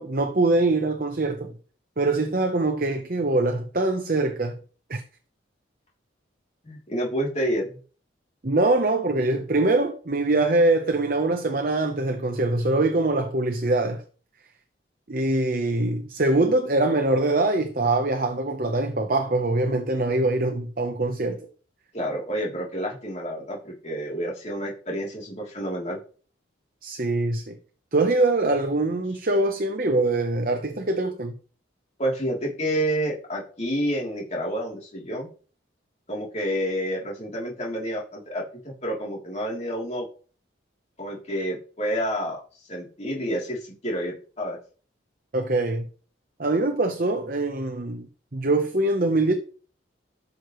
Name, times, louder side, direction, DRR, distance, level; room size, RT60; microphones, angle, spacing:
voice 1, 0.0-1.5 2.0-4.6 4.9-5.0 8.4-14.0 15.1-21.4 26.8-27.5 27.9-31.4 45.3-45.9 46.4-48.1 48.3-49.3, right 2 dB, 45° right, 0.9 m, -23 dB
voice 2, 6.6-7.8 21.9-26.0 32.0-35.3 36.1-40.1 41.0-44.6, equal, 35° left, 3.1 m, -29 dB
13.0 x 6.6 x 3.1 m
head